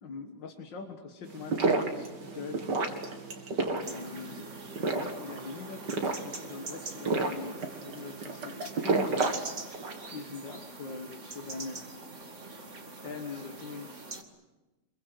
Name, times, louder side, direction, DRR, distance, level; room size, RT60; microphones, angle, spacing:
voice 1, 0.0-2.7 3.8-9.4 10.1-11.9 13.0-14.1, left 4 dB, 85° left, 4 dB, 2.3 m, -42 dB
sound 1, 1.3-10.1, right 3 dB, 75° right, 2.9 m, -31 dB
sound 2, 3.8-14.2, right 3 dB, 40° right, 2.5 m, -44 dB
26.0 x 23.0 x 7.9 m, 1.1 s
omnidirectional pair, 1.9 m